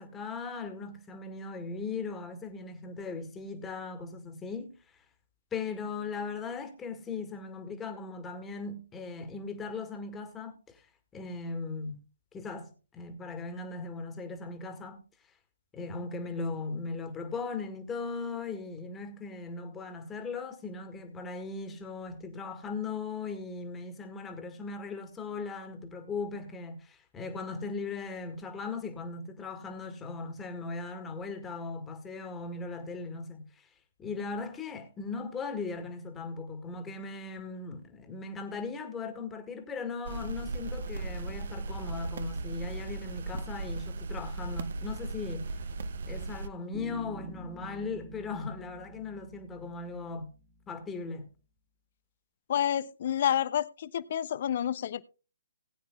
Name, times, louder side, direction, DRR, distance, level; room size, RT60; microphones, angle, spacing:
voice 1, 0.0-4.8 5.5-10.9 11.1-12.0 12.3-15.0 15.7-33.7 34.0-45.5 46.1-50.3 50.7-51.3, left 4 dB, 15° left, 1.8 m, -38 dB
sound 1, 40.0-46.5, right 3 dB, 60° right, 0.8 m, -37 dB
Bass guitar, 46.7-50.4, right 2 dB, 15° right, 1.6 m, -47 dB
voice 2, 52.5-55.0, left 10 dB, 50° left, 0.6 m, -29 dB
19.5 x 9.1 x 2.3 m
figure-of-eight pair, 135°, 0 cm